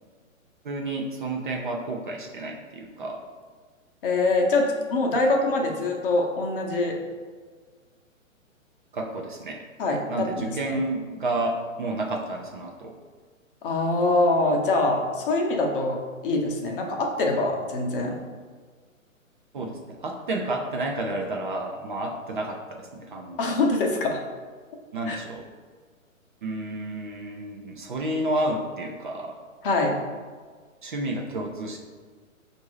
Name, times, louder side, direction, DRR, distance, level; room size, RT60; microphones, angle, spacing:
voice 1, 0.6-3.2 5.1-5.2 8.9-9.6 10.1-12.9 19.5-23.5 24.9-25.4 26.4-29.4 30.8-31.8, right 2 dB, 40° right, 1 dB, 0.4 m, -30 dB
voice 2, 4.0-7.0 9.8-10.8 13.6-18.2 23.4-24.2 25.1-25.2 29.6-30.0, left 2 dB, 40° left, 1 dB, 0.7 m, -24 dB
5.1 x 2.6 x 3.0 m, 1.5 s
hypercardioid pair, 135°, 40 cm